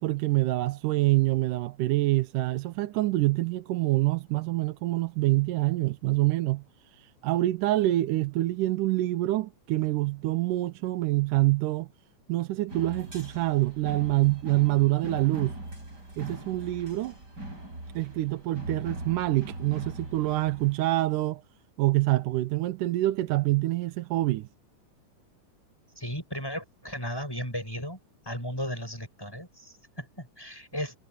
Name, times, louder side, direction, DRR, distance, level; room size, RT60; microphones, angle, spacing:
voice 1, 0.0-6.6 6.9-11.9 12.3-15.6 16.2-17.2 17.9-21.4 21.8-24.5, right 18 dB, 85° right, 2.4 m, -26 dB
sound 1, 12.7-20.8, right 1 dB, 30° right, 8.6 m, -41 dB
voice 2, 26.0-28.0 28.2-31.0, equal, 5° left, 7.9 m, -35 dB
omnidirectional pair, 3.6 m